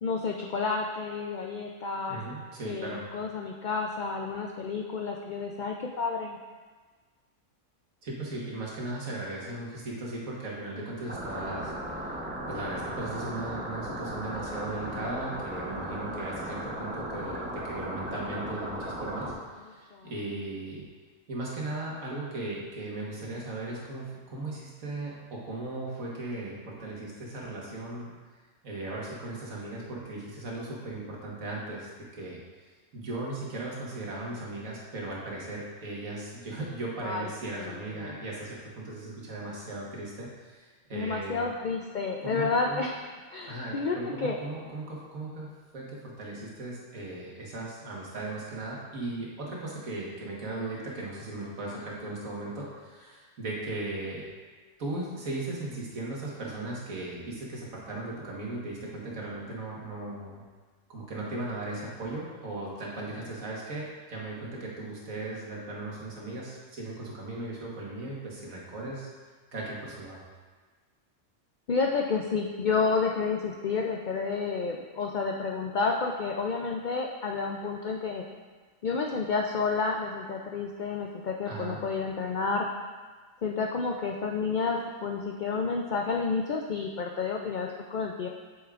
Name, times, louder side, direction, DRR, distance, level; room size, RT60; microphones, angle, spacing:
voice 1, 0.0-2.2 2.6-6.4 19.9-20.1 37.0-37.3 37.6-38.2 40.9-43.0 43.3-44.4 71.7-78.2 78.8-82.7 83.4-88.3, left 4 dB, 85° left, 1 dB, 0.4 m, -30 dB
voice 2, 2.1-3.1 8.0-12.1 12.5-20.8 21.3-28.1 28.6-32.4 32.9-41.5 42.2-42.8 43.5-45.5 45.7-54.2 54.8-60.4 60.9-69.1 69.5-70.2 81.5-81.8, right 2 dB, 85° right, -4 dB, 1.8 m, -37 dB
sound 1, 11.1-19.3, right 1 dB, 10° right, 0.6 m, -36 dB
8.2 x 6.2 x 2.4 m, 1.4 s
omnidirectional pair, 1.4 m